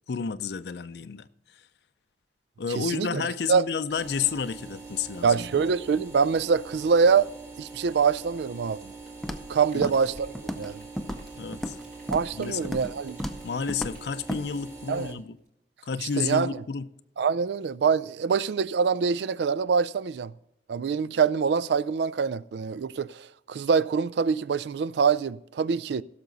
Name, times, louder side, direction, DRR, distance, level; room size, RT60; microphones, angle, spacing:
voice 1, 0.1-1.3 1.5-1.6 2.6-5.6 9.7-9.9 11.4-11.8 12.3-12.7 13.4-15.4 15.9-16.9, left 6 dB, 70° left, 0.5 m, -31 dB
voice 2, 2.8-3.2 3.5-3.7 5.2-7.3 7.6-8.8 9.5-10.8 12.1-13.2 14.9-15.2 16.2-16.6 17.2-20.3 20.7-26.0, right 6 dB, 75° right, 0.4 m, -25 dB
sound 1, 3.9-15.1, right 3 dB, 15° right, 1.5 m, -44 dB
Rain, 8.7-15.5, right 1 dB, 45° right, 4.1 m, -56 dB
Walk footsteps, 9.2-9.5 9.8-10.1 10.4-10.7 11.0-11.8 12.1-12.3 12.6-12.9 13.2-13.4 13.7-14.0 14.3-14.4, equal, ahead, 0.5 m, -33 dB
16.5 x 6.8 x 3.9 m
head